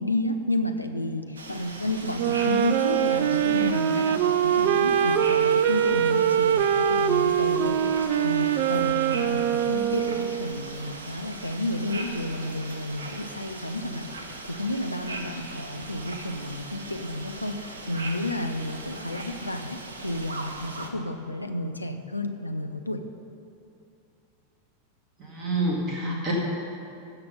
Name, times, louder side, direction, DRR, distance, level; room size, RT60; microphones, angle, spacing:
voice 1, 0.0-23.0 26.0-26.3, left 1 dB, 85° left, 7 dB, 0.6 m, -31 dB
sound 1, 1.4-20.9, right 2 dB, 70° right, 1.0 m, -39 dB
Wind instrument woodwind instrument, 2.1-10.6, right 9 dB, 50° right, 0.4 m, -23 dB
voice 2, 25.2-26.3, right 2 dB, 30° right, -3 dB, 2.0 m, -28 dB
15.5 x 6.0 x 5.4 m, 2.6 s
figure-of-eight pair, 90°, 0 cm